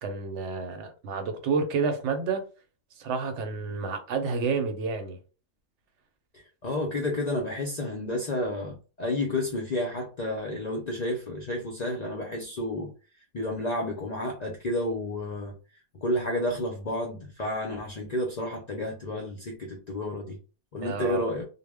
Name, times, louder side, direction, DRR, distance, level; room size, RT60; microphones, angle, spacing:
voice 1, 0.0-2.4 3.0-5.2 20.8-21.3, right 5 dB, 70° right, 0.9 m, -29 dB
voice 2, 6.3-12.9 13.3-15.5 16.0-20.4 20.7-21.4, left 1 dB, 60° left, 0.4 m, -31 dB
2.1 x 2.0 x 3.3 m
omnidirectional pair, 1.3 m